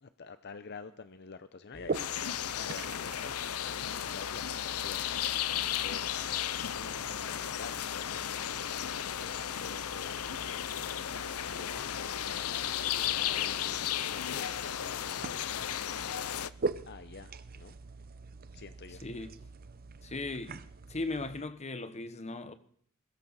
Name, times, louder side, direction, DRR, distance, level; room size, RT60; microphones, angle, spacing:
voice 1, 0.0-2.1 2.6-3.6 3.9-5.1 5.8-6.2 6.5-10.2 10.8-12.5 12.9-15.6 16.9-17.8 18.5-19.0, left 4 dB, 50° left, 0.8 m, -48 dB
sound 1, 1.7-21.4, right 4 dB, 45° right, 0.8 m, -44 dB
sound 2, 1.9-16.5, left 10 dB, 85° left, 0.7 m, -34 dB
voice 2, 19.0-19.4 20.0-20.6 20.9-22.5, left 2 dB, 30° left, 1.2 m, -37 dB
22.0 x 13.5 x 4.2 m
head